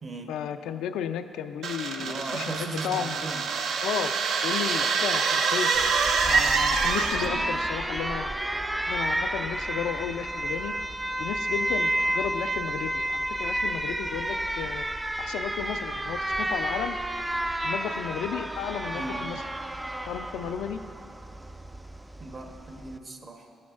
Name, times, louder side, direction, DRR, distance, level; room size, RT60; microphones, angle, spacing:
voice 1, 0.3-3.3 3.8-4.1 4.4-5.7 6.3-8.3 8.9-10.7 11.2-14.9 15.2-17.0 17.6-19.4 20.1-20.8, left 8 dB, 90° left, 9 dB, 0.3 m, -33 dB
sound 1, 1.6-7.5, right 5 dB, 70° right, 0.5 m, -26 dB
voice 2, 2.0-3.4 7.2-7.4 18.9-19.2 22.2-23.5, right 3 dB, 40° right, 4 dB, 0.9 m, -37 dB
Alarm, 5.7-23.0, right 1 dB, 10° right, 0.3 m, -31 dB
11.5 x 8.6 x 2.4 m, 2.7 s
cardioid pair, 90°, 0 cm